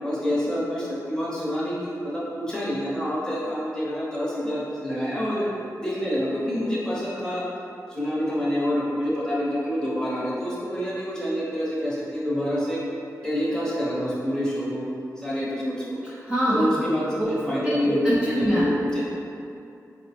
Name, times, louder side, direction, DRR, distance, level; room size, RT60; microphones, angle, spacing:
voice 1, 0.0-5.5 5.8-7.4 7.9-12.8 13.2-14.9 15.2-16.0 16.5-19.0, equal, 10° left, -7 dB, 0.8 m, -27 dB
voice 2, 16.0-16.6 17.2-17.3 17.6-18.6, equal, 10° right, -9 dB, 0.4 m, -25 dB
4.2 x 2.0 x 2.8 m, 2.7 s
wide cardioid pair, 120°, 6 cm